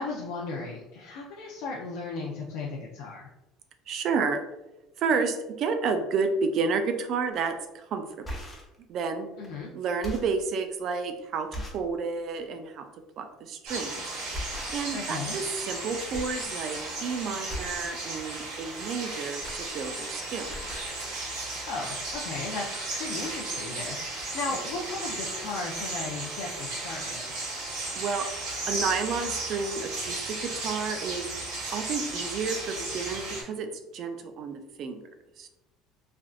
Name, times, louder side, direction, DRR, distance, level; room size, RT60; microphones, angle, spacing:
voice 1, 0.0-3.3 9.4-9.7 14.9-15.4 21.6-27.3, left 3 dB, 75° left, -3 dB, 0.4 m, -36 dB
voice 2, 3.9-4.4 5.0-8.2 8.9-9.3 9.7-12.9 13.2-14.0 14.7-20.8 24.5-24.6 27.9-28.3 28.6-31.3 31.7-35.0 35.4-35.5, right 5 dB, 50° right, 7 dB, 0.4 m, -31 dB
sound 1, 7.3-7.5 8.1-8.8 9.4-9.5 9.9-10.4 11.0-11.1 11.5-11.9 12.3-12.5 13.7-13.9 14.3-15.1 15.4-15.8 16.1-16.4 16.8-17.0 17.5-17.9 19.0-20.1 20.4-20.9 21.7-21.8 22.0-22.2, equal, 15° left, 0.5 m, -39 dB
sound 2, 13.7-33.4, right 2 dB, 80° right, 1.4 m, -35 dB
3.3 x 2.4 x 2.3 m, 0.98 s
cardioid pair, 140°, 0 cm